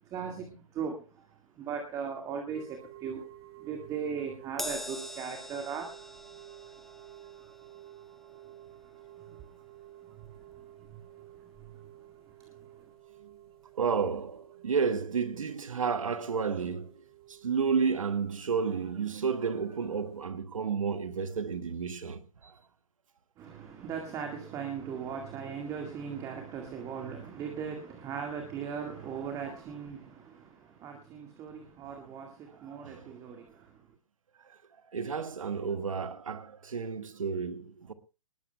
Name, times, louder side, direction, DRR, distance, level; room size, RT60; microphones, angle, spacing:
voice 1, 0.0-3.3 3.6-6.1 8.5-9.6 10.0-12.9 23.4-33.9, right 6 dB, 20° right, 1.9 m, -39 dB
sound 1, 2.5-20.2, right 13 dB, 45° right, 5.7 m, -53 dB
Crash cymbal, 4.6-11.2 11.5-11.8 12.8-12.9, left 1 dB, ahead, 0.7 m, -45 dB
voice 2, 13.8-16.9 17.3-22.5 31.9-32.0 32.7-33.2 34.5-34.6 34.9-37.9, right 6 dB, 70° right, 1.7 m, -31 dB
21.5 x 20.0 x 2.2 m
figure-of-eight pair, 135°, 18 cm